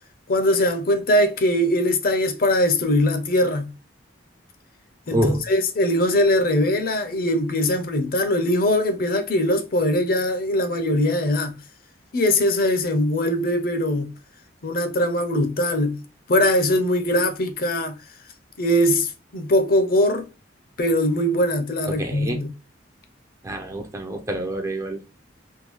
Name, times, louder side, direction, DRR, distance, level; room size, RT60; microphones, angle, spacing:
voice 1, 0.3-3.7 5.1-11.6 12.1-14.1 14.6-16.0 16.3-18.0 18.6-20.3 20.8-22.5, left 1 dB, 50° left, 0.6 m, -21 dB
voice 2, 5.1-5.4 21.9-22.5 23.4-25.0, right 1 dB, 15° right, 0.5 m, -26 dB
3.7 x 2.2 x 2.9 m
head